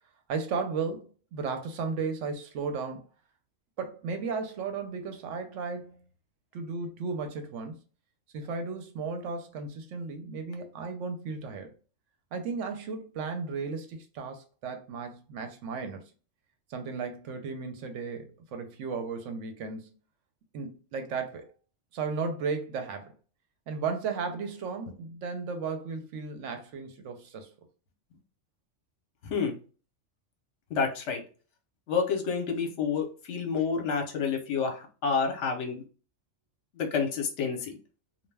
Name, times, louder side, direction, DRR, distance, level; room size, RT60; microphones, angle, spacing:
voice 1, 0.3-3.1 3.8-6.0 6.5-7.8 8.3-11.7 12.3-16.0 16.7-20.0 20.5-21.5 21.9-23.1 23.7-27.5, right 5 dB, 75° right, 0.9 m, -35 dB
voice 2, 29.2-29.5 30.7-31.2 31.9-35.8 36.8-37.8, left 5 dB, 65° left, 1.0 m, -29 dB
2.3 x 2.2 x 3.2 m
omnidirectional pair, 1.3 m